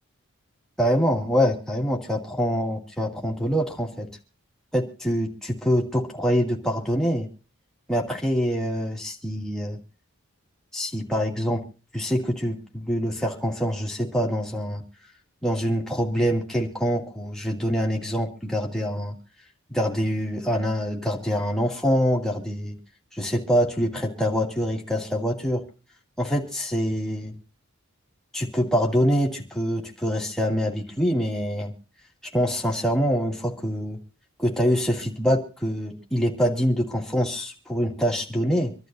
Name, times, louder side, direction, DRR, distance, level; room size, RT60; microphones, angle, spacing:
voice 1, 0.8-4.1 4.7-7.3 7.9-9.8 10.7-11.6 11.9-14.8 15.4-19.2 19.7-22.8 23.1-25.7 26.2-27.4 28.3-31.7 32.2-34.0 34.4-38.7, equal, 5° left, -1 dB, 2.3 m, -25 dB
26.0 x 12.0 x 2.6 m, 0.36 s
head